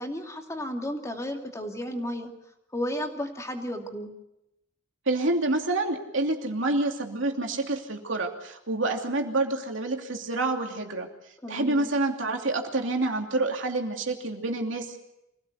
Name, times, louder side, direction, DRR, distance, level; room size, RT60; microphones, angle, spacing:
voice 1, 0.0-2.3 2.7-4.1 11.4-11.9, equal, 15° left, 3 dB, 2.6 m, -33 dB
voice 2, 5.1-11.1 11.5-15.0, right 2 dB, 75° right, 3 dB, 2.9 m, -28 dB
25.5 x 16.5 x 8.1 m, 0.86 s
head